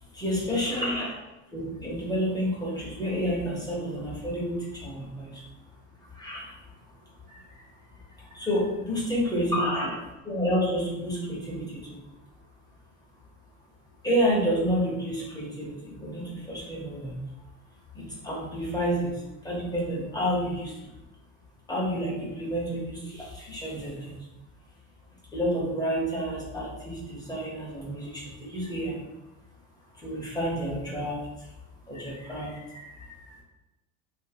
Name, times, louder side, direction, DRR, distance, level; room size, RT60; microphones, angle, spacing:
voice 1, 0.1-1.1 1.5-5.4 6.1-6.6 7.2-7.6 7.9-10.0 10.2-12.0 14.0-17.2 17.9-19.1 19.4-20.9 21.7-24.3 25.3-29.0 30.0-31.5 31.9-33.4, equal, 10° left, -5 dB, 0.8 m, -30 dB
2.5 x 2.5 x 2.8 m, 0.99 s
supercardioid pair, 110°, 39 cm